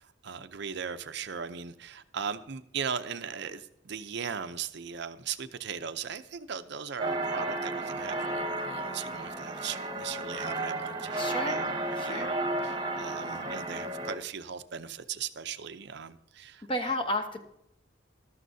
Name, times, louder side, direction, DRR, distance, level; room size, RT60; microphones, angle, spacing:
voice 1, 0.0-16.7, right 7 dB, 60° right, 11 dB, 0.6 m, -38 dB
sound 1, 7.0-14.2, right 2 dB, 25° right, 1.1 m, -33 dB
voice 2, 11.2-11.6 12.0-12.3 16.7-17.4, left 1 dB, 25° left, 4 dB, 1.1 m, -31 dB
14.0 x 12.5 x 2.7 m, 0.78 s
head